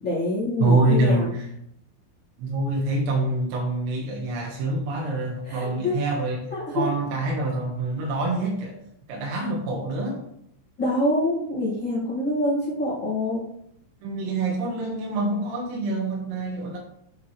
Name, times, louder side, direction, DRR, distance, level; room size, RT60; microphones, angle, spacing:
voice 1, 0.0-1.3 5.4-6.0 6.5-6.9 9.3-9.4 10.8-13.4, left 1 dB, 75° left, -10 dB, 1.0 m, -26 dB
voice 2, 0.6-1.5 2.4-6.5 6.7-8.8 9.1-10.2 14.0-16.8, right 2 dB, 65° right, -2 dB, 3.0 m, -25 dB
8.7 x 6.8 x 3.2 m, 0.74 s
omnidirectional pair, 5.8 m